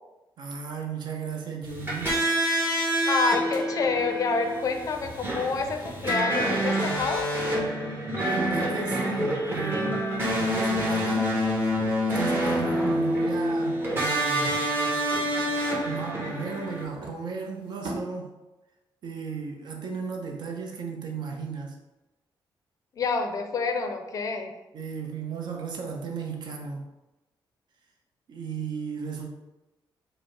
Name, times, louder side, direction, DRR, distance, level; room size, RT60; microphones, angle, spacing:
voice 1, 0.4-2.2 8.2-10.0 10.4-11.3 12.1-14.5 15.8-18.3 19.0-21.8 24.7-26.8 28.3-29.3, right 5 dB, 60° right, 2 dB, 0.7 m, -35 dB
sound 1, 1.6-16.8, equal, 25° right, 1.0 m, -27 dB
voice 2, 3.1-7.3 22.9-24.5, left 4 dB, 45° left, 5 dB, 0.4 m, -28 dB
sound 2, 3.3-4.7 5.0-7.7 9.8-9.9 10.1-12.2 12.4-13.5 13.8-14.9 15.1-18.0, right 3 dB, 80° right, 1.1 m, -44 dB
5.0 x 2.0 x 4.5 m, 1.0 s
wide cardioid pair, 180°, 8 cm